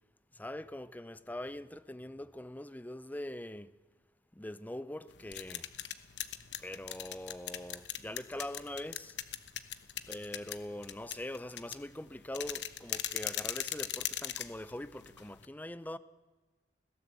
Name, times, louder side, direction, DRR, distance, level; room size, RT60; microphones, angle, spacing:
voice 1, 0.3-3.7 4.3-5.7 6.6-9.2 10.1-16.0, left 1 dB, 10° left, 0.6 m, -43 dB
sound 1, 5.1-15.5, left 11 dB, 85° left, 1.1 m, -40 dB
20.5 x 16.5 x 8.1 m
head